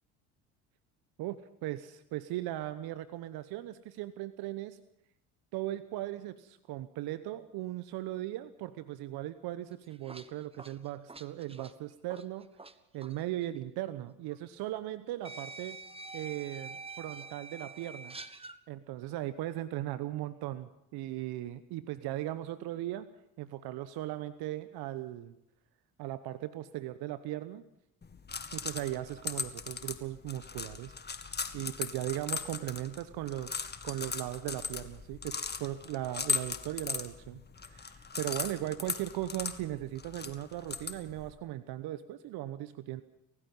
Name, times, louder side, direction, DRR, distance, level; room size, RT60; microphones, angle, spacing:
voice 1, 1.2-4.8 5.5-12.5 12.9-15.8 16.1-18.2 18.7-23.1 23.4-25.3 26.0-27.6 28.5-30.9 31.5-43.0, right 14 dB, 60° right, 14 dB, 1.1 m, -38 dB
sound 1, 9.7-12.7 13.0-13.2 14.3-14.4 15.2-18.6, right 3 dB, 15° right, 1.4 m, -46 dB
sound 2, 28.0-41.3, left 5 dB, 25° left, 1.9 m, -38 dB
30.0 x 16.0 x 5.5 m, 0.83 s
hypercardioid pair, 65°, 43 cm